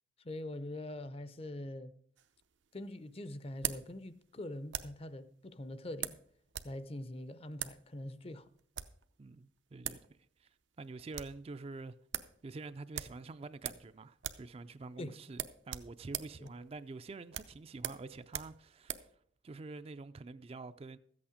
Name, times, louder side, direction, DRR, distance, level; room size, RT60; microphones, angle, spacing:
voice 1, 0.2-1.9 2.7-6.2 6.6-8.5 15.0-15.2 16.4-16.5, left 1 dB, 30° left, 0.6 m, -43 dB
sound 1, 2.2-5.1 6.0-6.8 7.0-7.1 7.5-7.8 8.5-9.0 9.6-9.7 9.8-10.1 10.4-10.5 10.8-11.4 11.7-11.8 12.1-12.3 12.9-13.9 14.2-14.5 14.8-14.9 15.3-19.1, right 11 dB, 80° right, 0.7 m, -41 dB
voice 2, 9.2-12.0 12.4-19.1 19.4-21.0, right 3 dB, 30° right, 0.4 m, -47 dB
13.5 x 8.6 x 5.0 m
head